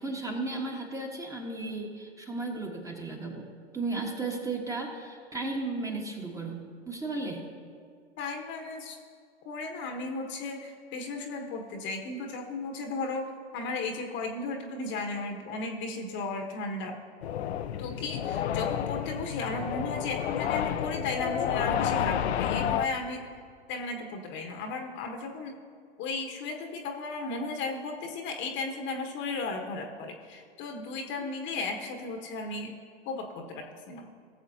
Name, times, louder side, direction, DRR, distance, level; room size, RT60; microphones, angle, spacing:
voice 1, 0.0-3.5 3.7-7.4 31.1-31.2, right 3 dB, 10° right, 0 dB, 1.3 m, -35 dB
voice 2, 8.2-9.0 9.4-17.0 17.8-23.2 23.7-25.5 26.0-32.7 33.0-34.1, left 3 dB, 35° left, 3 dB, 1.2 m, -35 dB
sound 1, 17.2-22.9, left 10 dB, 70° left, 0.6 m, -30 dB
19.0 x 7.3 x 2.8 m, 2.1 s
hypercardioid pair, 105°, 33 cm